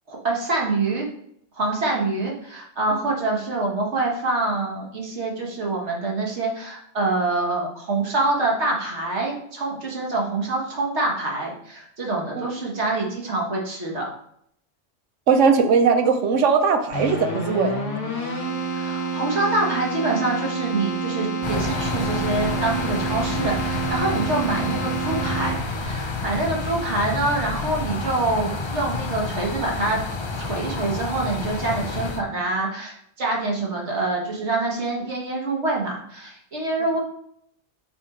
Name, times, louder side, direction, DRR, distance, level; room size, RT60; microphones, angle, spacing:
voice 1, 0.1-1.1 1.5-14.1 18.7-30.0 30.4-37.0, right 2 dB, 65° right, -2 dB, 1.7 m, -26 dB
voice 2, 15.3-17.7, right 5 dB, 80° right, 7 dB, 1.1 m, -19 dB
Keyboard (musical), 16.9-25.9, right 3 dB, 75° left, 1.4 m, -28 dB
sound 1, 21.4-32.2, left 3 dB, 45° left, 0.4 m, -29 dB
5.7 x 4.4 x 3.8 m, 0.71 s
omnidirectional pair, 1.3 m